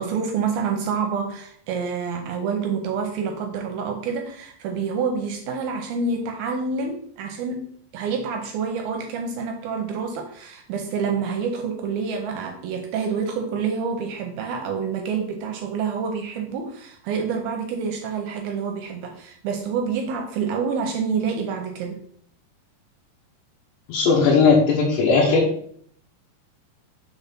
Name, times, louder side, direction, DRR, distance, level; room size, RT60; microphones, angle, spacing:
voice 1, 0.0-7.7 7.9-22.0, right 5 dB, 80° right, 4 dB, 2.1 m, -27 dB
voice 2, 23.9-25.4, left 4 dB, 85° left, -5 dB, 3.4 m, -17 dB
7.2 x 3.5 x 5.7 m, 0.62 s
omnidirectional pair, 5.0 m